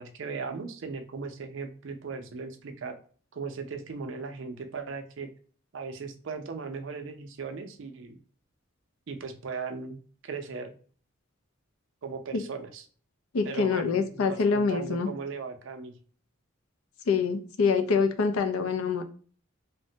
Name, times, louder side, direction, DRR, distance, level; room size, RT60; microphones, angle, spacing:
voice 1, 0.0-3.0 3.3-5.3 5.7-8.2 9.1-10.0 10.2-10.7 12.0-12.8 13.4-15.9, right 4 dB, 60° right, 6 dB, 0.4 m, -37 dB
voice 2, 13.3-15.1 17.1-19.0, left 5 dB, 90° left, 8 dB, 0.4 m, -25 dB
3.2 x 2.1 x 2.7 m, 0.43 s
head